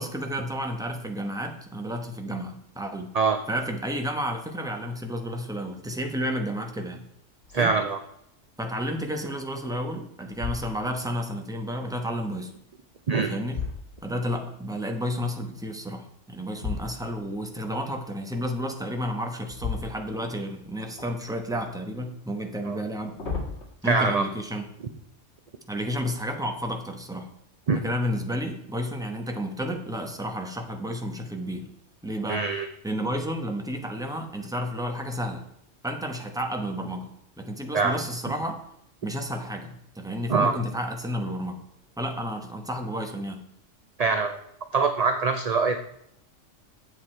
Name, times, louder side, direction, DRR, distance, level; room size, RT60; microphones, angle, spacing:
voice 1, 0.0-3.1 3.5-7.1 7.6-7.8 8.6-12.5 13.2-13.6 14.0-23.2 23.8-24.7 25.7-27.3 27.7-31.7 32.0-32.5 32.8-35.4 35.8-37.1 37.4-38.6 39.0-41.6 42.0-43.4, equal, 5° right, 4 dB, 0.9 m, -31 dB
sound 1, 7.4-7.9 8.4-8.5 9.1-9.7 10.2-11.1 12.8-14.5 16.5-17.4 19.4-20.6 21.0-21.7 22.8-23.6, left 5 dB, 60° left, 1.9 m, -36 dB
voice 2, 7.5-8.0 13.1-13.3 22.7-22.8 23.8-24.3 27.7-27.8 32.3-32.7 37.7-38.0 40.3-40.6 44.0-44.4 44.7-45.8, right 4 dB, 45° right, 8 dB, 0.5 m, -23 dB
8.2 x 7.6 x 4.4 m, 0.75 s
omnidirectional pair, 1.3 m